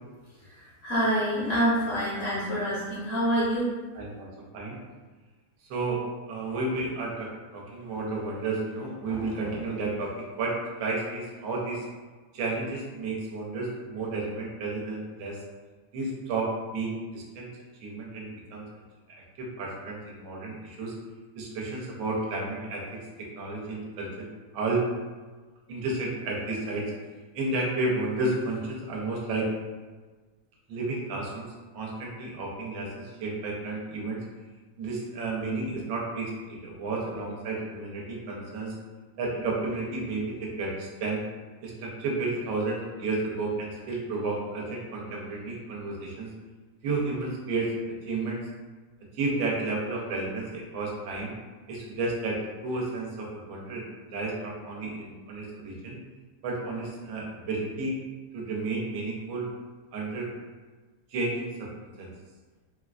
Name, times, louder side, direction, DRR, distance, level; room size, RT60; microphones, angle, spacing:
voice 1, 0.4-3.7, equal, 60° left, -8 dB, 0.6 m, -27 dB
voice 2, 3.9-4.3 4.5-4.8 5.7-11.9 12.3-15.4 15.9-17.5 17.8-18.6 19.1-20.9 21.4-23.0 23.3-24.3 24.5-24.9 25.7-26.9 27.3-29.5 30.7-31.5 31.7-34.2 34.8-38.7 39.2-41.2 41.6-46.3 46.8-47.7 48.0-48.5 49.1-51.3 51.7-56.0 56.4-58.0 58.3-59.5 59.9-60.3 61.1-61.7 62.0-62.1, right 3 dB, 85° right, -2 dB, 1.5 m, -32 dB
3.8 x 2.4 x 2.2 m, 1.4 s
omnidirectional pair, 2.1 m